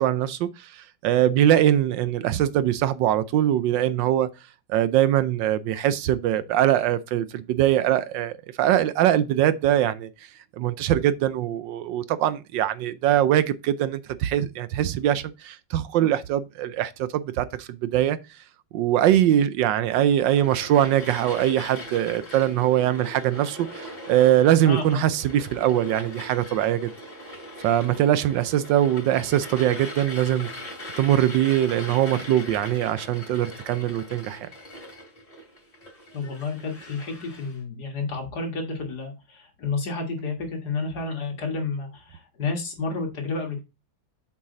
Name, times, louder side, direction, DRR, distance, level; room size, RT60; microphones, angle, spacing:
voice 1, 0.0-4.3 4.7-10.1 10.6-18.2 18.7-26.9 27.6-30.5 31.0-34.5, right 12 dB, 75° right, 1.2 m, -22 dB
sound 1, 20.3-37.6, left 1 dB, 20° left, 3.0 m, -40 dB
voice 2, 24.6-25.0 36.1-43.6, left 3 dB, 55° left, 2.2 m, -30 dB
7.2 x 4.8 x 3.8 m
omnidirectional pair, 2.1 m